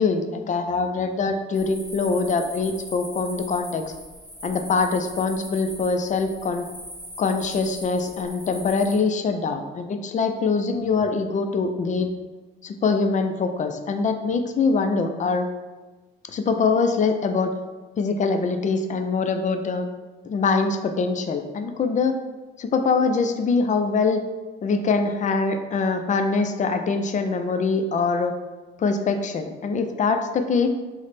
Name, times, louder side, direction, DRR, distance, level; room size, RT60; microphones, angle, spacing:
voice 1, 0.0-3.8 4.4-6.7 7.2-12.1 12.6-15.5 16.3-17.5 18.0-19.9 20.2-22.2 22.6-24.2 24.6-28.3 28.8-30.7, left 4 dB, 40° left, 6 dB, 0.4 m, -23 dB
sound 1, 1.5-9.0, equal, 5° left, 1.3 m, -40 dB
3.1 x 2.1 x 4.0 m, 1.2 s
cardioid pair, 90°, 20 cm